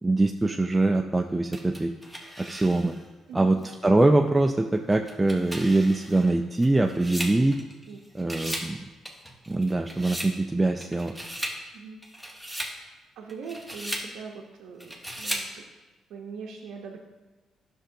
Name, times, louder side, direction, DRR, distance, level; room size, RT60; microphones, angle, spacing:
voice 1, 0.0-1.9 2.4-2.9 3.3-3.6 3.8-7.6 8.1-8.8 9.5-11.1, right 2 dB, 15° right, 3 dB, 0.3 m, -23 dB
sound 1, 1.5-3.1 3.6-3.7 4.9-7.9 8.2-8.7 9.1-10.4 10.8-11.6 12.0-12.8 13.3-14.1 14.8-15.5, equal, 5° left, 1.1 m, -36 dB
voice 2, 13.2-15.7 16.1-17.0, right 5 dB, 85° right, -1 dB, 0.6 m, -41 dB
10.0 x 6.2 x 2.6 m, 1.2 s
cardioid pair, 90°, 0 cm